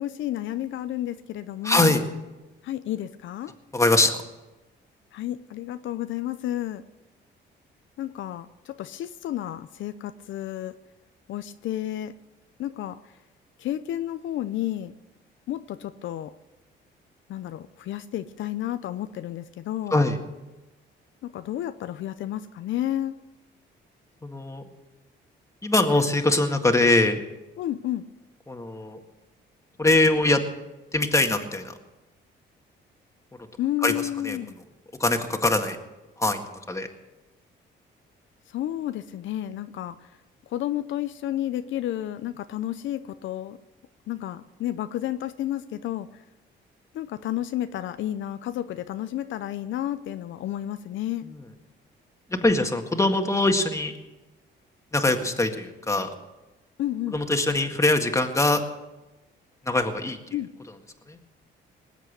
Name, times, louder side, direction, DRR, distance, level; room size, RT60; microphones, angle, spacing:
voice 1, 0.0-2.0 2.6-3.5 5.1-6.8 8.0-10.7 11.3-12.1 12.6-13.0 13.6-14.9 15.5-16.3 17.3-20.0 21.2-23.1 27.6-28.0 33.6-34.5 38.5-40.0 40.5-43.6 44.1-46.1 46.9-51.3 56.8-57.2 60.3-60.5, left 12 dB, 75° left, 11 dB, 0.6 m, -31 dB
voice 2, 1.6-2.0 3.7-4.2 19.9-20.2 24.2-24.6 25.6-27.2 28.5-29.0 29.8-30.4 30.9-31.7 33.8-34.4 35.0-35.8 36.2-36.9 51.2-51.5 52.3-53.9 54.9-56.1 57.1-58.6 59.7-60.2 61.1-61.2, left 2 dB, 15° left, 5 dB, 1.9 m, -22 dB
20.0 x 8.3 x 8.1 m, 1.1 s
cardioid pair, 90°, 20 cm